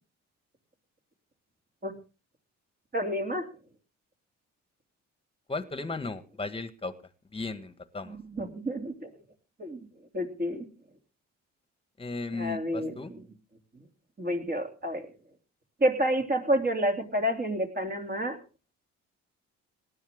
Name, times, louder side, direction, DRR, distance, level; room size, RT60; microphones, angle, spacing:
voice 1, 2.9-3.5 8.0-9.1 9.6-9.9 10.1-10.6 12.3-13.2 14.2-15.1 15.8-18.4, equal, 30° right, 4 dB, 3.1 m, -29 dB
voice 2, 5.5-6.9 7.3-8.2 12.0-13.1, left 3 dB, 20° left, 12 dB, 1.6 m, -35 dB
18.0 x 12.0 x 3.7 m, 0.32 s
cardioid pair, 90°, 30 cm